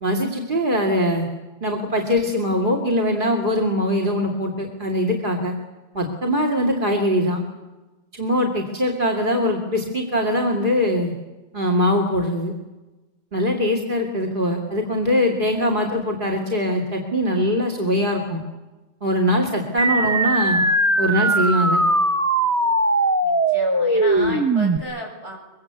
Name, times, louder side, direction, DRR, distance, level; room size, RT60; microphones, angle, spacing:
voice 1, 0.0-1.3 1.6-5.5 5.9-7.4 8.1-11.1 11.5-12.5 13.3-18.4 19.0-20.6 21.0-21.8 24.2-24.3, equal, 50° right, 3 dB, 2.8 m, -22 dB
sound 1, 19.8-24.8, right 2 dB, 15° right, 0.9 m, -20 dB
voice 2, 23.2-25.4, equal, 90° right, -1 dB, 7.1 m, -34 dB
24.0 x 23.0 x 8.2 m, 1.1 s
omnidirectional pair, 1.1 m